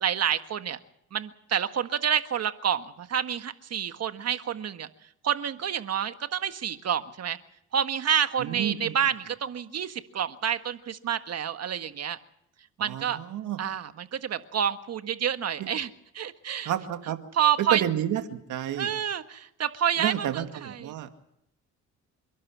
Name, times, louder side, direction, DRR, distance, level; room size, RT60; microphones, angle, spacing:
voice 1, 0.0-0.8 1.1-4.9 5.2-7.4 7.7-12.2 12.8-13.2 13.6-16.7 17.3-17.8 18.8-20.9, right 9 dB, 55° right, 9 dB, 1.7 m, -28 dB
voice 2, 8.4-8.9 12.8-13.6 15.6-15.7 16.7-17.2 17.6-18.9 20.0-21.1, right 11 dB, 80° right, 7 dB, 2.2 m, -30 dB
28.5 x 12.0 x 8.6 m, 0.77 s
cardioid pair, 90°, 30 cm